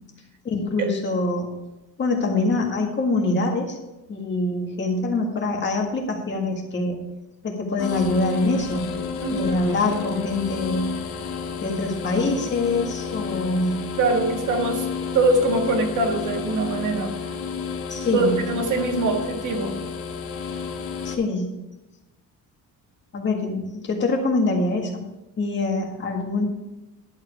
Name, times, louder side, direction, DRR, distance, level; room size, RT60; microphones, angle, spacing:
voice 1, 0.4-1.5 2.0-3.8 4.1-7.0 7.4-8.9 9.3-10.9 11.6-13.8 17.9-18.3 21.0-21.5 23.1-25.0 25.4-26.4, left 2 dB, 35° left, 1 dB, 1.8 m, -24 dB
sound 1, 7.8-21.1, left 6 dB, 90° left, 1.8 m, -31 dB
voice 2, 9.2-9.6 14.0-14.9 15.1-17.2 18.1-19.8, right 3 dB, 65° right, 3 dB, 1.7 m, -23 dB
11.0 x 7.6 x 4.9 m, 1.0 s
cardioid pair, 165°, 33 cm